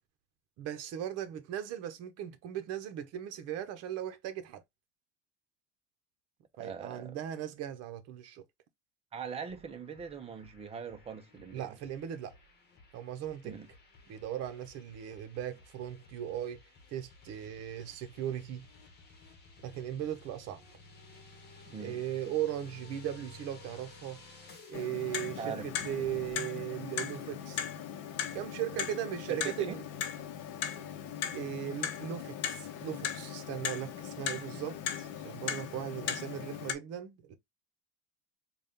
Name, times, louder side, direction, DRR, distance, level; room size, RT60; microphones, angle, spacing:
voice 1, 0.6-4.6 6.6-8.4 11.5-12.4 12.9-13.6 14.1-16.6 16.9-18.7 19.6-20.6 21.8-24.2 24.7-27.7 28.3-29.8 31.1-37.4, right 10 dB, 50° right, 0.9 m, -38 dB
voice 2, 6.6-7.2 9.1-11.7 13.4-13.7 21.7-22.0 25.4-26.2 29.3-29.7, right 6 dB, 20° right, 0.6 m, -42 dB
sound 1, 9.5-26.4, left 3 dB, 30° left, 1.1 m, -55 dB
Clock, 24.7-36.7, left 9 dB, 50° left, 0.7 m, -38 dB
4.1 x 2.4 x 3.6 m
cardioid pair, 155°, 32 cm